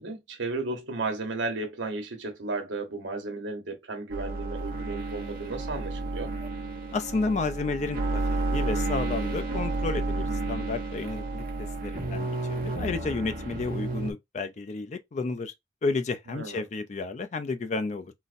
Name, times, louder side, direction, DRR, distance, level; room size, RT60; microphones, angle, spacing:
voice 1, 0.0-6.3 16.3-16.6, right 3 dB, 85° right, 1.0 m, -34 dB
sound 1, 4.1-14.1, right 2 dB, 50° right, 0.8 m, -31 dB
voice 2, 6.9-11.4 11.8-15.5 15.8-18.1, left 3 dB, 40° left, 0.4 m, -31 dB
3.9 x 2.1 x 2.5 m
head